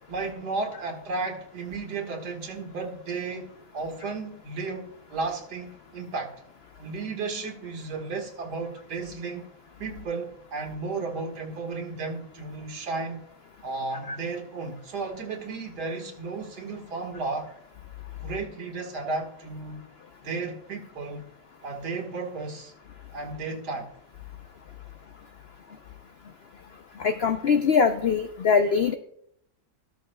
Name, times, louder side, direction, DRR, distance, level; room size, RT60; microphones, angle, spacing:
voice 1, 0.1-3.5 3.7-6.3 6.8-9.5 9.8-13.2 13.6-17.5 18.2-19.8 20.2-21.3 21.6-22.7 23.1-23.9, right 3 dB, 80° right, 2.1 m, -33 dB
voice 2, 27.0-28.9, left 6 dB, 85° left, 0.5 m, -22 dB
13.5 x 12.5 x 2.2 m
omnidirectional pair, 1.7 m